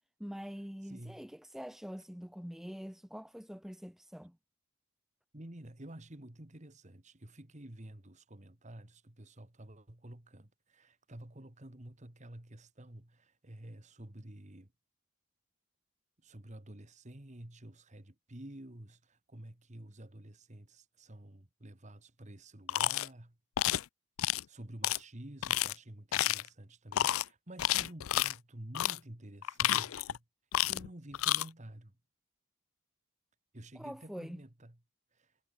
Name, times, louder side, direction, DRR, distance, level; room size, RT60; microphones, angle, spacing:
voice 1, 0.2-4.4 33.7-34.4, equal, ahead, 0.4 m, -45 dB
voice 2, 0.9-1.3 5.3-14.7 16.2-23.4 24.3-30.2 30.6-32.0 33.5-34.8 35.1-35.3, right 1 dB, 35° right, 1.8 m, -50 dB
sound 1, 22.7-23.1 23.6-23.8 24.2-24.4 24.8-25.0 25.4-25.7 26.1-26.5 26.9-27.2 27.6-28.3 28.7-29.0 29.4-30.2 30.5-30.9 31.1-31.4, left 13 dB, 70° left, 0.4 m, -30 dB
head